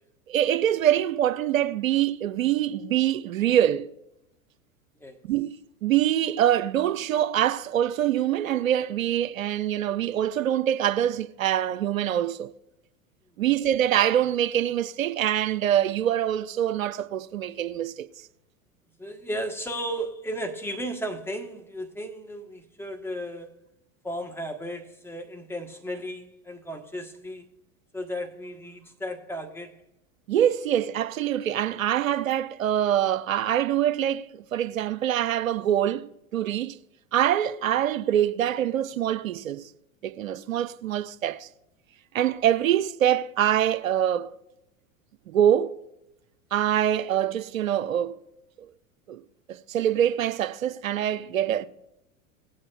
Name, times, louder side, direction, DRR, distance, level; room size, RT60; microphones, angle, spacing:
voice 1, 0.3-3.9 5.2-12.5 13.4-18.1 30.3-36.8 37.1-39.7 40.0-41.5 42.1-44.3 45.3-45.8 46.5-48.2 49.1-49.2 49.5-51.7, right 11 dB, 75° right, 0.6 m, -24 dB
voice 2, 19.0-23.6 24.0-27.5 27.9-29.8, equal, 5° left, 1.2 m, -35 dB
19.0 x 8.7 x 2.4 m
figure-of-eight pair, 85°, 41 cm